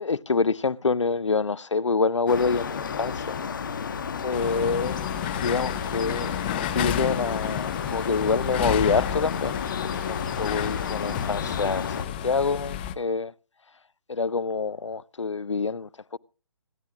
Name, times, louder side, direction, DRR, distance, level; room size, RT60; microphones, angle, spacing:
voice 1, 0.0-3.4 4.2-5.0 5.4-9.6 9.8-13.3 14.1-16.2, left 4 dB, 75° left, 0.5 m, -26 dB
sound 1, 2.3-12.1, left 6 dB, 45° left, 1.2 m, -32 dB
sound 2, 4.3-12.9, left 10 dB, 20° left, 0.8 m, -31 dB
26.0 x 12.0 x 2.4 m
figure-of-eight pair, 140°, 15 cm